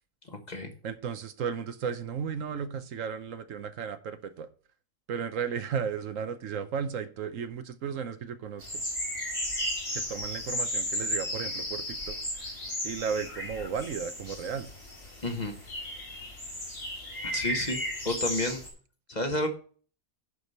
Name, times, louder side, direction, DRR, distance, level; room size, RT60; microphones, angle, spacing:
voice 1, 0.2-0.7 15.2-15.6 17.2-17.8 18.0-18.6 19.1-19.5, left 1 dB, 35° left, 5 dB, 1.3 m, -30 dB
voice 2, 0.8-4.5 5.1-8.7 9.9-12.6 12.8-14.7, right 7 dB, 70° right, 10 dB, 1.1 m, -34 dB
sound 1, 8.6-18.7, left 1 dB, 65° left, 5.3 m, -34 dB
11.0 x 4.8 x 5.4 m, 0.42 s
omnidirectional pair, 1.4 m